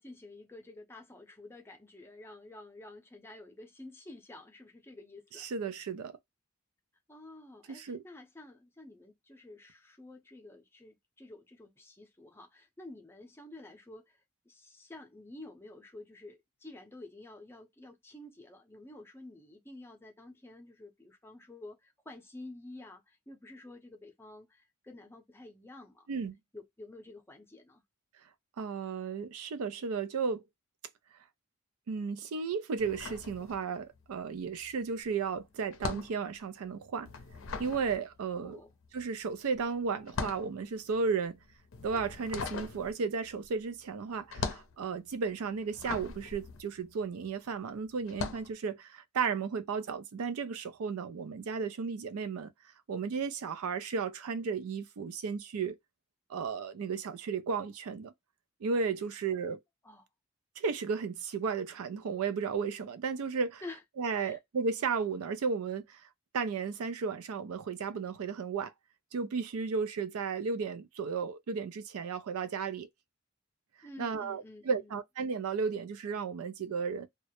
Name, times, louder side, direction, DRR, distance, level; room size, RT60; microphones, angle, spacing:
voice 1, 0.0-5.5 7.1-26.1 26.5-27.8 38.3-38.7 59.8-60.1 63.6-63.8 64.1-64.4 73.8-75.0, left 2 dB, 10° left, 0.5 m, -50 dB
voice 2, 5.4-6.2 7.7-8.0 26.1-26.4 28.6-30.4 31.9-37.1 37.6-38.6 38.9-41.4 41.8-52.5 52.9-55.8 56.3-58.1 58.6-59.6 60.6-63.6 64.0-66.0 66.3-68.7 69.1-72.9 74.0-77.1, right 5 dB, 85° right, 0.4 m, -34 dB
sound 1, 32.8-34.0 34.3-47.5 48.0-48.5, left 4 dB, 65° left, 0.5 m, -40 dB
2.2 x 2.0 x 2.8 m
head